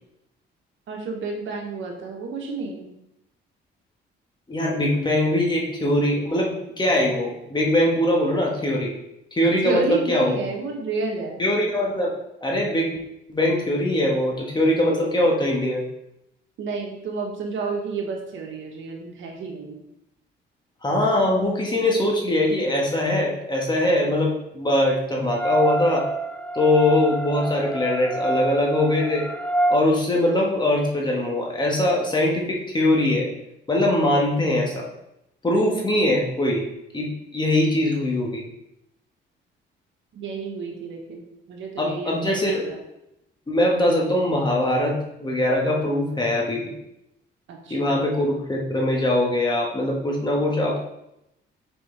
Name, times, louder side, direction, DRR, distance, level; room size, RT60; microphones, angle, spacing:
voice 1, 0.9-2.9 9.6-11.4 16.6-19.8 40.1-42.2 42.7-42.8 47.5-47.8, right 4 dB, 75° right, 1 dB, 1.4 m, -30 dB
voice 2, 4.5-8.9 9.3-10.4 11.4-12.1 12.4-13.0 13.3-15.8 20.8-26.1 26.5-29.2 29.7-33.3 33.7-34.9 35.4-36.6 36.9-38.4 41.8-42.7 43.5-46.7 47.7-50.8, left 1 dB, 20° left, -2 dB, 1.7 m, -22 dB
sound 1, 25.3-29.8, right 2 dB, 5° left, 0.5 m, -26 dB
6.8 x 4.7 x 3.4 m, 0.85 s
cardioid pair, 90°, 20 cm